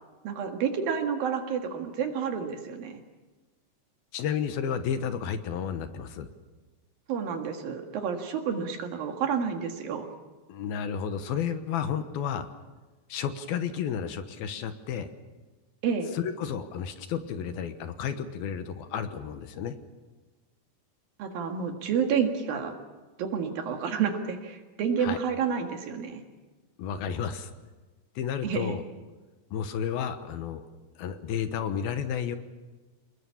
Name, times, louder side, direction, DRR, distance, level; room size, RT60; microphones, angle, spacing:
voice 1, 0.2-3.0 7.1-10.1 15.8-16.1 21.2-22.7 23.2-26.2 28.4-28.8, right 7 dB, 65° right, 4 dB, 3.5 m, -29 dB
voice 2, 4.1-6.3 10.5-12.5 13.1-15.1 16.1-19.8 25.0-25.2 26.8-27.5 28.2-28.8 29.5-30.6 31.0-32.4, left 8 dB, 75° left, 9 dB, 2.9 m, -32 dB
28.0 x 21.0 x 7.1 m, 1.2 s
omnidirectional pair, 4.6 m